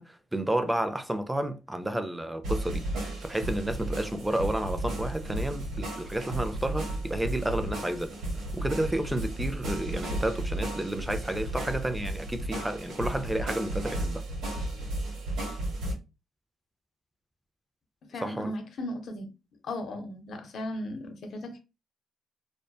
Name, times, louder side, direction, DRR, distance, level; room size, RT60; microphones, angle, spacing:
voice 1, 0.0-8.1 8.5-14.2 18.2-18.5, right 1 dB, 10° right, 0.4 m, -31 dB
sound 1, 2.4-15.9, right 1 dB, 80° right, 1.0 m, -34 dB
voice 2, 18.1-19.3 19.6-21.6, left 1 dB, 60° left, 0.7 m, -36 dB
2.5 x 2.1 x 2.3 m
cardioid pair, 90°, 0 cm